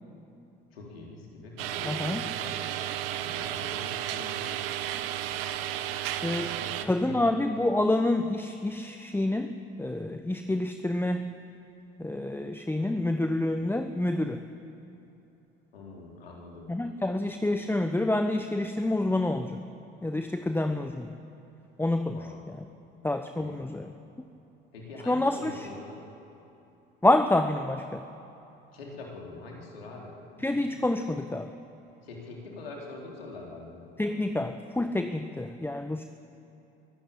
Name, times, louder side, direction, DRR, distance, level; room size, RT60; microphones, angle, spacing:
voice 1, 0.7-4.8 5.4-5.9 6.4-7.6 15.7-16.8 22.1-22.4 23.4-23.6 24.7-26.0 28.7-30.6 32.0-33.9, left 2 dB, 85° left, -1 dB, 3.8 m, -44 dB
sound 1, 1.6-6.8, right 12 dB, 80° right, 1.1 m, -33 dB
voice 2, 1.8-2.2 6.2-6.5 6.9-11.4 12.0-14.4 16.7-19.6 20.0-21.1 21.8-22.2 22.5-22.6 23.0-23.9 25.1-25.7 27.0-28.0 30.4-31.5 34.0-36.0, left 1 dB, 5° left, 7 dB, 1.0 m, -28 dB
23.5 x 13.0 x 8.8 m, 2.9 s
hypercardioid pair, 60°, 29 cm